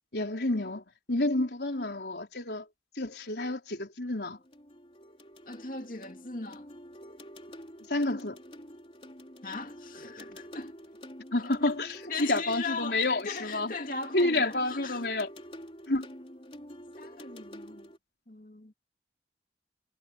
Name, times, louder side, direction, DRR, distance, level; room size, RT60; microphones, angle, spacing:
voice 1, 0.1-2.7 2.9-4.4 7.8-8.4 11.3-13.7 14.1-15.3 15.9-16.1, left 2 dB, 75° left, 4.0 m, -29 dB
sound 1, 4.4-18.0, equal, 35° left, 3.9 m, -48 dB
voice 2, 5.5-6.7 9.4-10.8 12.1-15.0 17.0-17.9 18.3-18.7, left 4 dB, 50° left, 2.4 m, -39 dB
head